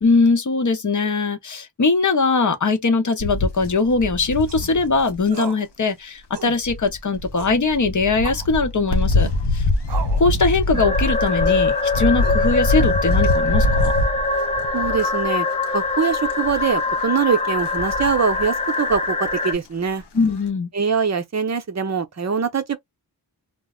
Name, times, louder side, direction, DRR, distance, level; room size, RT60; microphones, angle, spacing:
voice 1, 0.0-9.6 10.2-13.9 20.1-20.7, left 3 dB, 50° left, 0.7 m, -21 dB
sound 1, 3.2-5.4 6.6-15.2 15.6-15.9 16.2-16.7 17.6-18.4 18.9-19.0 19.3-19.4, left 2 dB, 90° left, 0.6 m, -23 dB
sound 2, 4.4-4.7 5.3-5.6 5.9-6.0 6.3-6.6 7.4-7.6 8.2-8.5 9.2-9.4 9.9-10.3 10.7-11.0 11.5-11.7 12.2-12.7, right 7 dB, 85° right, 0.6 m, -35 dB
sound 3, 10.7-19.5, left 3 dB, 20° left, 0.4 m, -23 dB
voice 2, 14.7-15.5 15.7-20.0 20.7-22.8, right 6 dB, 45° right, 0.6 m, -23 dB
2.0 x 2.0 x 3.5 m
wide cardioid pair, 60°, 39 cm